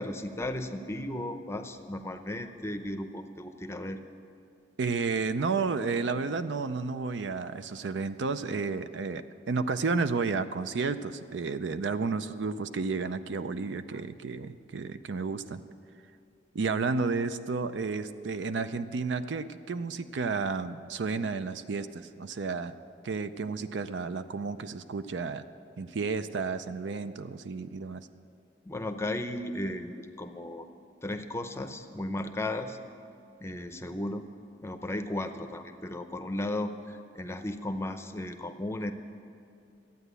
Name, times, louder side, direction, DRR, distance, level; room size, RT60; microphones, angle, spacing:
voice 1, 0.0-4.0 28.7-30.7 31.0-32.8 33.4-34.3 34.6-38.9, left 1 dB, 15° left, 7 dB, 0.6 m, -35 dB
voice 2, 4.8-15.6 16.5-22.7 23.0-25.4 25.8-28.1, right 4 dB, 70° right, 12 dB, 0.5 m, -32 dB
13.0 x 9.1 x 8.2 m, 2.6 s
head